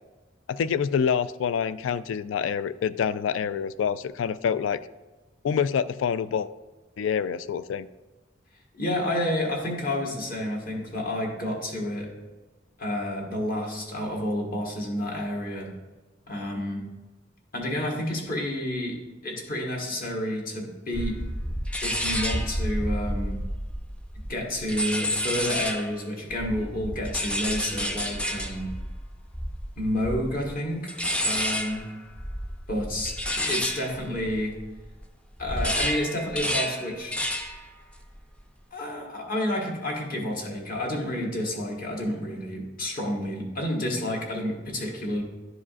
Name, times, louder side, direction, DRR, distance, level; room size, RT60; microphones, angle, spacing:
voice 1, 0.5-4.8 5.4-6.5 7.0-7.9, left 7 dB, 80° left, 15 dB, 0.3 m, -26 dB
voice 2, 8.7-12.1 12.8-15.7 16.3-16.8 17.5-19.0 19.2-21.2 21.8-23.4 24.3-28.7 29.8-31.8 32.7-34.5 35.4-37.2 38.7-45.2, left 1 dB, 50° left, -1 dB, 1.5 m, -30 dB
sound 1, 20.9-26.0 26.3-35.0 35.3-37.6 37.9-38.3, equal, 5° left, 0.4 m, -30 dB
11.0 x 4.8 x 2.4 m, 1.2 s
head